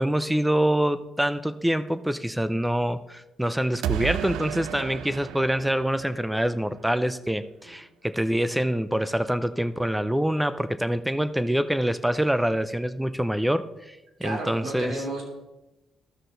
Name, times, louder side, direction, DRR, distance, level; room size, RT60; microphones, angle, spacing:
voice 1, 0.0-15.0, right 1 dB, 5° right, 13 dB, 0.5 m, -25 dB
sound 1, 3.8-6.7, right 12 dB, 90° right, 0.3 m, -33 dB
voice 2, 14.2-15.2, right 2 dB, 75° right, 0 dB, 2.8 m, -32 dB
13.0 x 6.4 x 3.9 m, 0.97 s
cardioid pair, 90°, 0 cm